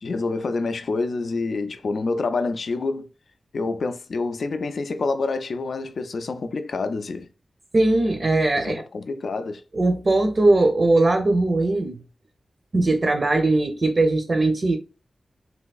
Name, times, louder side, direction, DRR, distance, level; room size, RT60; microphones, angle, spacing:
voice 1, 0.0-3.1 3.5-7.3 8.6-9.6, left 3 dB, 70° left, 0.4 m, -27 dB
voice 2, 7.7-8.8 9.7-12.0 12.7-14.8, right 2 dB, 40° right, 0.5 m, -20 dB
3.3 x 3.0 x 2.3 m
wide cardioid pair, 110°, 0 cm